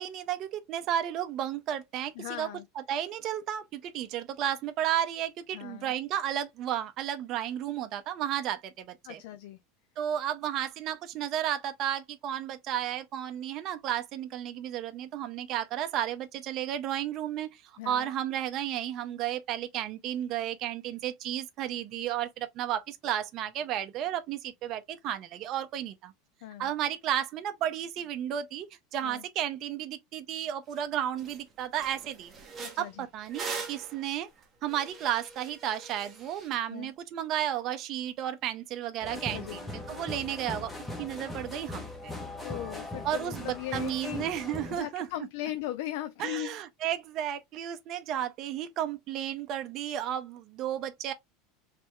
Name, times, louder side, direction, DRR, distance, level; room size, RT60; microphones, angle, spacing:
voice 1, 0.0-2.5 2.8-9.2 10.0-26.1 26.6-28.7 28.9-32.3 32.8-34.3 34.6-39.6 39.9-40.7 41.0-42.1 43.0-45.1 46.2-51.1, right 11 dB, 35° right, 0.6 m, -33 dB
voice 2, 2.1-2.6 5.5-5.9 9.0-9.6 17.8-18.1 26.4-26.7 29.0-29.2 32.6-33.1 36.7-36.9 39.1-39.6 42.4-44.3 44.7-46.6, left 13 dB, 65° left, 0.4 m, -38 dB
sound 1, 30.7-30.8 31.2-31.4 31.7-36.5, right 5 dB, 15° right, 1.0 m, -42 dB
sound 2, 39.0-44.8, left 1 dB, 5° left, 0.8 m, -40 dB
3.3 x 3.3 x 3.0 m
supercardioid pair, 165°, 0 cm